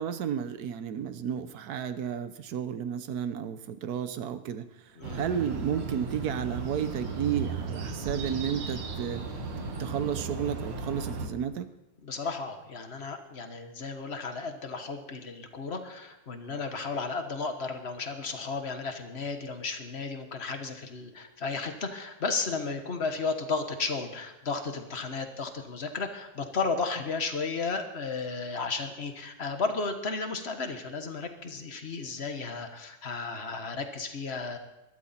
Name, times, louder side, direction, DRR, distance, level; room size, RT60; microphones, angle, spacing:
voice 1, 0.0-9.2 9.8-11.7, right 8 dB, 60° right, 11 dB, 1.0 m, -32 dB
sound 1, 5.0-11.3, right 4 dB, 85° right, 2.5 m, -35 dB
voice 2, 12.0-34.6, left 4 dB, 35° left, 6 dB, 1.3 m, -34 dB
21.5 x 12.0 x 4.3 m, 0.96 s
omnidirectional pair, 2.3 m